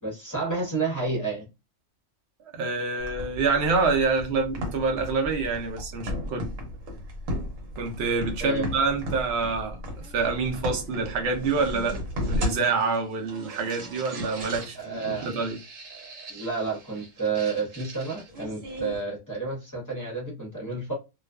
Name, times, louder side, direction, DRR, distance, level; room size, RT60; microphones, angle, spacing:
voice 1, 0.0-1.5 8.4-8.6 14.7-15.3 16.3-20.9, right 4 dB, 20° left, 0.6 m, -30 dB
voice 2, 2.5-6.5 7.8-9.8 10.1-12.0 12.2-15.6, right 4 dB, 60° right, 0.8 m, -26 dB
sound 1, 3.0-19.0, equal, 80° right, 1.2 m, -36 dB
2.4 x 2.3 x 2.2 m
omnidirectional pair, 1.4 m